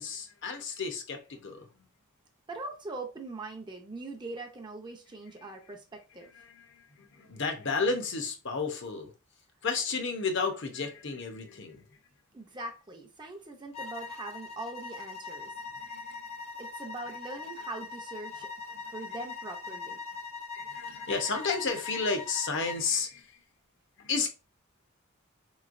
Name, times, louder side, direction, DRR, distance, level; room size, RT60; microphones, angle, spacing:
voice 1, 0.0-1.7 6.4-9.1 9.6-12.0 15.8-16.3 18.7-18.9 20.5-23.4 24.0-24.3, left 4 dB, 55° left, 0.8 m, -32 dB
voice 2, 2.5-6.3 12.3-15.5 16.6-18.5 18.9-20.0, right 2 dB, 20° right, 0.6 m, -41 dB
sound 1, 13.7-22.9, left 4 dB, 30° left, 0.5 m, -41 dB
4.4 x 3.1 x 2.5 m
head